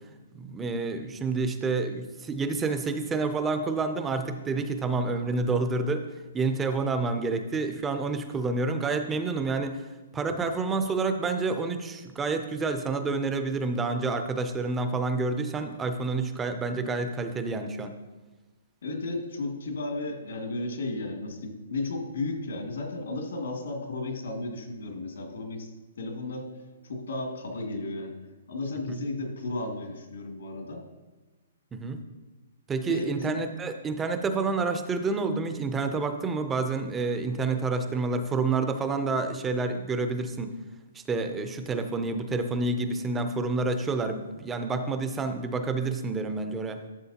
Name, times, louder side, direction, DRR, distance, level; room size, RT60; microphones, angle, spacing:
voice 1, 0.3-6.1 6.3-9.9 10.1-18.0 28.9-29.0 31.7-32.0 32.7-40.6 40.9-46.8, right 3 dB, 10° right, 8 dB, 0.4 m, -29 dB
voice 2, 18.8-25.7 26.0-26.5 26.8-28.2 28.5-30.8 32.9-33.4, left 2 dB, 80° left, 1 dB, 2.3 m, -34 dB
12.0 x 7.4 x 2.8 m, 1.2 s
hypercardioid pair, 175°, 0 cm